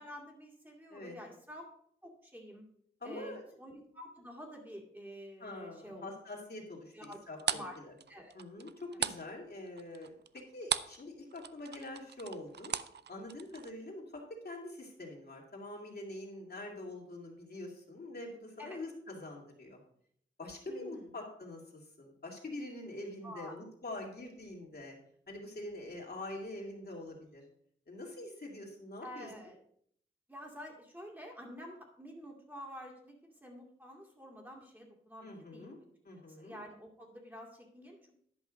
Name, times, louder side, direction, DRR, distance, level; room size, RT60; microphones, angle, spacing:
voice 1, 0.0-1.7 2.0-2.7 3.0-6.1 6.9-7.2 7.4-7.8 8.1-8.3 18.6-18.8 20.7-21.0 23.2-23.6 29.0-29.6 30.3-35.7 36.4-38.2, equal, 10° right, 0 dB, 2.1 m, -49 dB
voice 2, 3.0-3.6 5.4-7.9 8.3-12.7 13.1-19.8 20.4-25.0 25.3-27.4 27.9-29.3 35.2-35.8 36.0-36.6, left 1 dB, 50° left, -1 dB, 2.5 m, -45 dB
sound 1, 7.0-11.0 11.3-13.7, right 8 dB, 55° right, 0.5 m, -37 dB
11.0 x 5.5 x 5.1 m, 0.65 s
wide cardioid pair, 85°, 20 cm